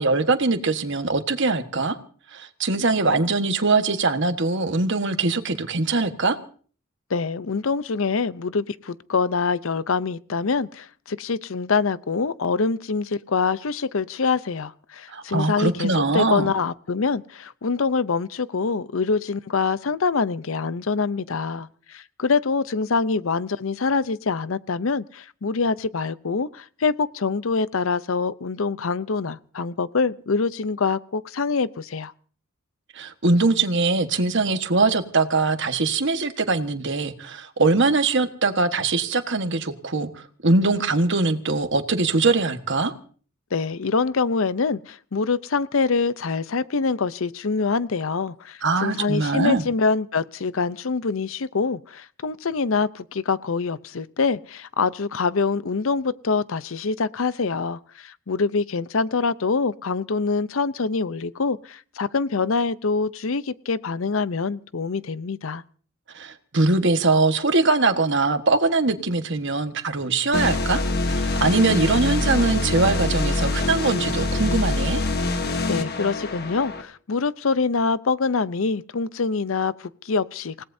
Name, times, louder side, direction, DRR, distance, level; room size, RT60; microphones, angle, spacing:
voice 1, 0.0-2.0 2.3-6.4 15.1-16.5 32.9-42.9 48.6-49.6 66.1-75.0, right 3 dB, 60° right, 1.5 m, -22 dB
voice 2, 7.1-32.1 43.5-65.6 75.7-80.6, left 4 dB, 70° left, 0.7 m, -25 dB
sound 1, 70.3-76.8, left 2 dB, 50° left, 1.5 m, -25 dB
28.0 x 17.5 x 2.7 m
head